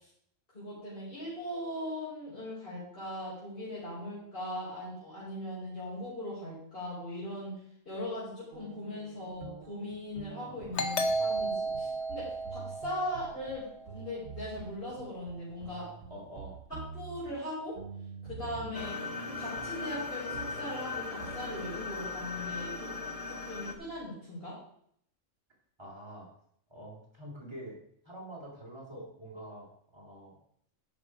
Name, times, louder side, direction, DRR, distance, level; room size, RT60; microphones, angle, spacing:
voice 1, 0.5-7.6 7.9-15.9 16.7-17.8 18.2-19.0 19.4-22.9 23.3-24.6, left 1 dB, 45° left, -10 dB, 5.4 m, -39 dB
sound 1, 8.5-24.1, right 5 dB, 75° right, 1.2 m, -49 dB
voice 2, 10.5-10.8 16.1-16.6 18.5-18.8 25.8-26.3 26.7-27.8 28.1-30.4, right 1 dB, 20° right, -4 dB, 3.3 m, -46 dB
Doorbell, 10.8-14.1, right 1 dB, 65° left, 1.2 m, -33 dB
sound 2, 18.7-23.8, left 4 dB, 30° left, 1.0 m, -38 dB
10.5 x 6.8 x 4.8 m, 0.67 s
omnidirectional pair, 1.3 m